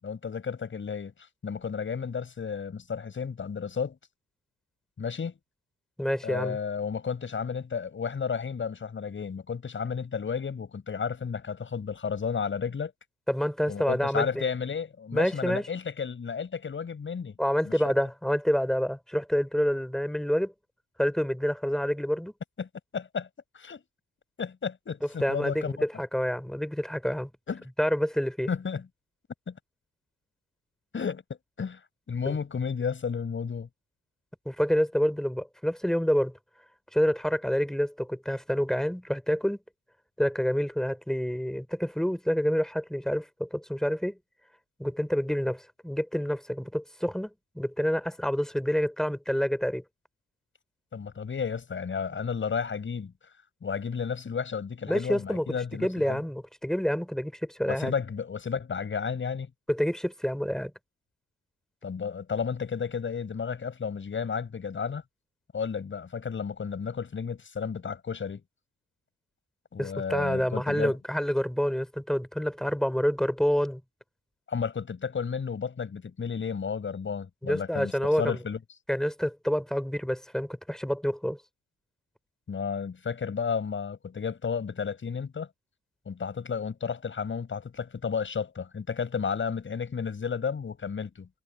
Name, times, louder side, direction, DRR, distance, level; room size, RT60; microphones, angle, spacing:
voice 1, 0.0-1.1 1.4-4.0 5.0-5.4 6.2-12.9 13.7-17.3 17.6-17.7 22.6-23.3 23.5-23.8 24.4-25.8 27.5-27.7 28.5-28.9 29.5-29.6 30.9-31.2 31.6-31.8 32.1-33.7 50.9-53.1 53.6-56.2 57.7-59.5 61.8-65.0 65.5-68.4 69.7-70.9 74.5-78.6 82.5-85.5 86.0-91.3, left 6 dB, 40° left, 6.8 m, -32 dB
voice 2, 6.0-6.6 13.3-14.5 15.1-15.7 17.4-20.5 21.0-22.3 25.2-27.3 27.8-28.5 32.3-32.4 34.4-36.4 36.9-39.6 40.2-44.2 44.8-47.3 47.5-49.8 54.9-55.5 55.8-57.9 59.7-60.7 69.8-73.8 77.4-78.4 78.9-81.4, equal, ahead, 3.4 m, -28 dB
cardioid pair, 90°, 30 cm